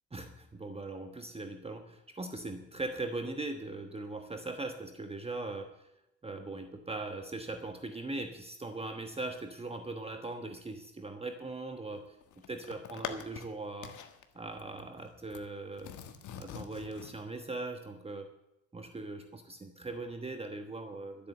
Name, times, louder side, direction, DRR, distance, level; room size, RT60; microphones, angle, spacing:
voice 1, 0.1-5.9 6.2-12.2 12.5-13.9 14.3-15.9 16.4-18.3 18.7-21.3, right 2 dB, 20° right, 6 dB, 1.3 m, -40 dB
sound 1, 11.9-13.5 13.8-14.2 14.6-15.5 15.8-17.1, left 8 dB, 75° left, 1.5 m, -44 dB
12.5 x 8.5 x 7.9 m, 0.88 s
cardioid pair, 90°, 30 cm